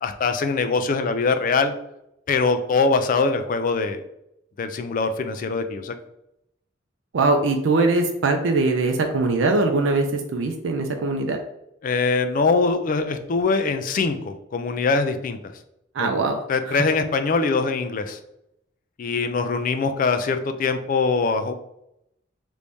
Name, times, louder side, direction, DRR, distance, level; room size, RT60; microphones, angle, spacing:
voice 1, 0.0-1.7 2.3-4.0 4.6-5.9 11.8-15.4 16.0-16.1 16.5-18.2 19.0-21.5, left 4 dB, 45° left, 8 dB, 0.3 m, -23 dB
voice 2, 7.1-11.4 15.9-16.4 16.7-16.8, right 3 dB, 80° right, 4 dB, 0.4 m, -21 dB
3.1 x 2.6 x 3.4 m, 0.81 s
head